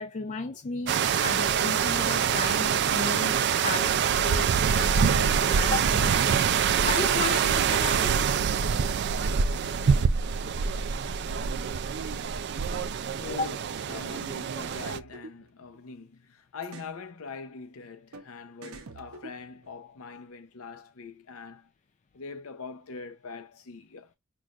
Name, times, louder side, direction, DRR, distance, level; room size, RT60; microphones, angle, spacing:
voice 1, 0.0-6.3 6.8-8.2 13.4-13.5, left 3 dB, 35° left, 0.4 m, -34 dB
sound 1, 0.9-15.0, right 7 dB, 50° right, 0.4 m, -25 dB
sound 2, 12.6-12.9 14.1-14.3 14.6-16.0 16.6-17.0 18.1-18.3 18.6-19.7, right 3 dB, 80° right, 0.8 m, -46 dB
voice 2, 13.1-21.7 22.1-24.1, left 4 dB, 75° left, 0.7 m, -43 dB
6.0 x 2.4 x 2.4 m
head